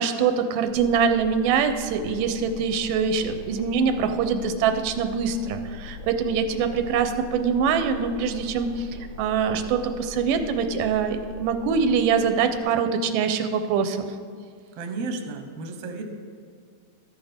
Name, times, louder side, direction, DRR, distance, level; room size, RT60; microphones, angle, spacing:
voice 1, 0.0-8.9 9.2-14.1, right 6 dB, 85° right, 8 dB, 2.2 m, -24 dB
sound 1, 0.7-12.6, left 5 dB, 80° left, 2.7 m, -41 dB
voice 2, 14.7-16.0, right 3 dB, 65° right, 4 dB, 1.7 m, -33 dB
12.5 x 8.7 x 3.5 m, 2.1 s
omnidirectional pair, 3.7 m